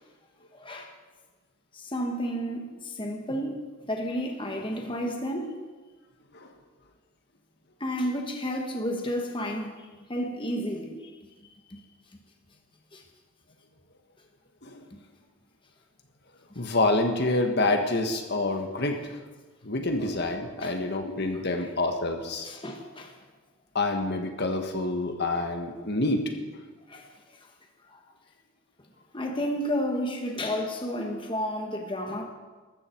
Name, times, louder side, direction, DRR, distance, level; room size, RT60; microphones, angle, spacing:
voice 1, 0.5-0.9 1.7-3.6 3.9-5.6 7.8-11.1 11.7-11.8 12.9-13.0 20.6-20.8 22.4-23.1 26.9-27.1 27.9-28.0 29.1-32.3, equal, 25° left, 3 dB, 1.5 m, -31 dB
voice 2, 14.6-14.9 16.6-19.2 19.6-22.5 23.8-26.2, left 2 dB, 55° left, 4 dB, 1.6 m, -27 dB
20.0 x 14.0 x 4.6 m, 1.3 s
head